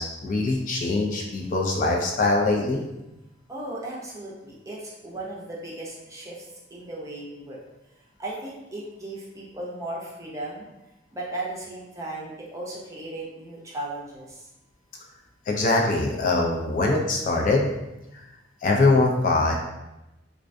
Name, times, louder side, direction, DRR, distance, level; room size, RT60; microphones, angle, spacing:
voice 1, 0.0-2.8 15.5-17.7 18.6-19.6, left 2 dB, 45° left, 0 dB, 0.3 m, -22 dB
voice 2, 3.5-6.5 6.7-7.6 8.2-10.7 11.1-14.5, right 1 dB, 15° right, -5 dB, 0.5 m, -36 dB
2.4 x 2.2 x 2.5 m, 0.95 s
head